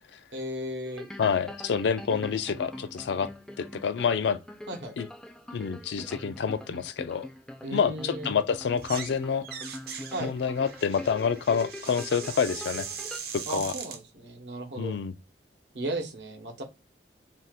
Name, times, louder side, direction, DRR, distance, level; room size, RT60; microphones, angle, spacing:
voice 1, 0.3-1.0 4.7-4.9 7.6-8.3 10.1-10.3 13.5-14.9 15.7-16.6, right 1 dB, 80° right, 0.9 m, -35 dB
sound 1, 0.8-13.2, left 1 dB, 5° left, 0.3 m, -43 dB
voice 2, 1.2-3.3 3.6-4.4 5.0-5.1 5.5-7.3 7.7-9.5 10.2-12.9 13.3-13.7 14.8-15.1, left 6 dB, 80° left, 0.4 m, -27 dB
sound 2, 8.7-9.2 9.4-14.0, right 7 dB, 55° right, 0.6 m, -40 dB
2.7 x 2.4 x 3.4 m
head